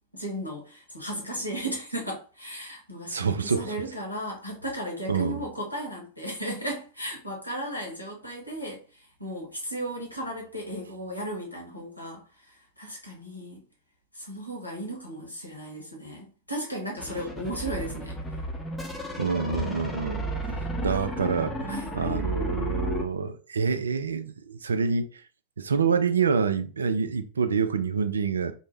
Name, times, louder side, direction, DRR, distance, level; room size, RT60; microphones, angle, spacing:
voice 1, 0.1-8.8 9.2-13.6 14.1-18.2 21.7-22.0, right 1 dB, 85° left, 1.0 m, -35 dB
voice 2, 3.1-3.8 5.1-5.4 19.2-20.6 20.8-25.1 25.6-28.5, right 5 dB, 70° right, 0.3 m, -27 dB
sound 1, 17.0-23.1, equal, 10° left, 0.7 m, -32 dB
2.5 x 2.1 x 3.3 m
figure-of-eight pair, 90°, 0 cm